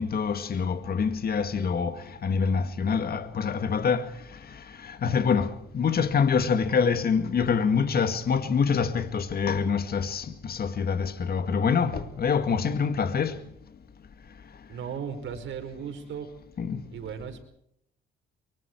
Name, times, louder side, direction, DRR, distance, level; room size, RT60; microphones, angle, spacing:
voice 1, 0.0-4.1 4.8-13.4 16.6-16.8, left 6 dB, 50° left, 2.0 m, -25 dB
voice 2, 14.7-16.3 16.9-17.4, right 7 dB, 70° right, 5.1 m, -36 dB
24.5 x 23.5 x 4.7 m
cardioid pair, 90°, 20 cm